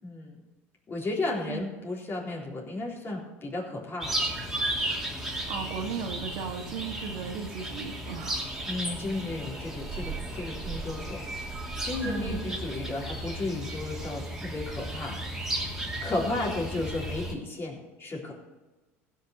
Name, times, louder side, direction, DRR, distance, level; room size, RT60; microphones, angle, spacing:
voice 1, 0.0-0.4 0.9-4.3 8.7-11.2 11.8-15.2 16.0-18.3, left 2 dB, 30° left, -2 dB, 3.7 m, -34 dB
sound 1, 4.0-17.3, right 1 dB, 5° right, 2.7 m, -34 dB
voice 2, 5.3-8.5 12.0-13.0, right 6 dB, 65° right, 4 dB, 1.6 m, -36 dB
16.0 x 5.5 x 6.5 m, 1.2 s
hypercardioid pair, 85°, 7 cm